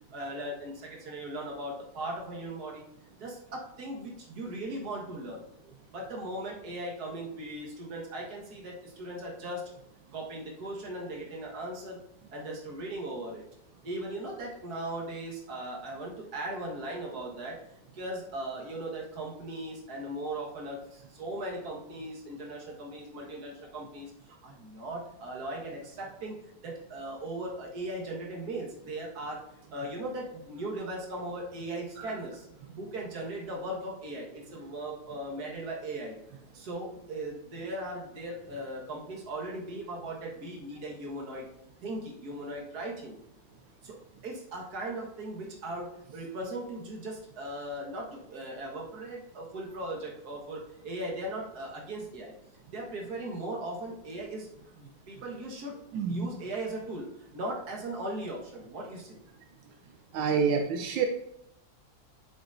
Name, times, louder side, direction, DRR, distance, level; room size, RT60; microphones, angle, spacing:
voice 1, 0.1-2.8 3.2-5.4 5.9-9.7 10.1-12.0 12.3-13.4 13.8-17.6 17.9-29.4 29.7-32.5 32.8-36.2 36.5-41.5 41.8-43.2 43.8-52.3 52.7-54.5 54.7-55.8 56.1-59.2, right 1 dB, 55° right, -2 dB, 2.0 m, -38 dB
voice 2, 55.9-56.3 60.1-61.1, right 6 dB, 85° right, 4 dB, 1.4 m, -27 dB
7.8 x 6.7 x 2.6 m, 0.81 s
omnidirectional pair, 2.0 m